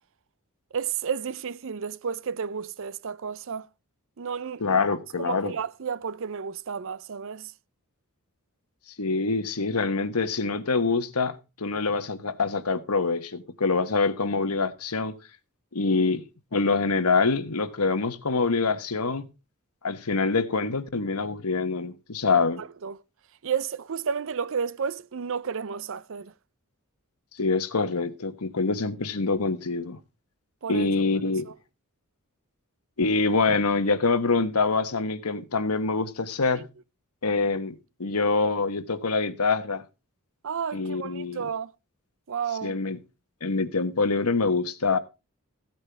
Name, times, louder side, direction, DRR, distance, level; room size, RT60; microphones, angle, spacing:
voice 1, 0.7-3.7 4.2-4.8 5.2-7.5 22.6-23.0 23.4-26.3 30.6-30.9 31.5-31.6 36.6-36.7 40.4-41.7 42.3-42.7, right 6 dB, 60° right, 0.6 m, -32 dB
voice 2, 4.6-5.5 9.0-15.2 15.7-16.2 16.5-19.3 19.8-22.6 27.4-30.0 30.7-31.5 33.0-36.6 37.2-37.7 38.0-39.8 40.7-41.5 42.6-43.0 43.4-45.0, left 4 dB, 85° left, 1.2 m, -25 dB
15.5 x 9.0 x 3.4 m
head